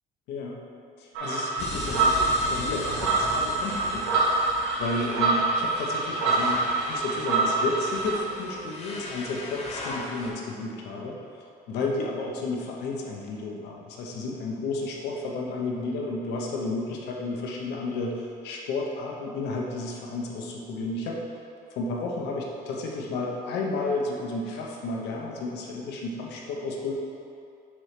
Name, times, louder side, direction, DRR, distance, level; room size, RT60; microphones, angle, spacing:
voice 1, 0.3-0.6 1.0-11.2 11.7-21.2 21.7-26.9, left 2 dB, 85° left, -1 dB, 0.9 m, -32 dB
sound 1, 1.1-8.2, right 3 dB, 85° right, 1.2 m, -26 dB
sound 2, 1.6-10.3, left 2 dB, 40° left, 1.1 m, -38 dB
6.1 x 3.1 x 5.8 m, 2.6 s
cardioid pair, 110°, 17 cm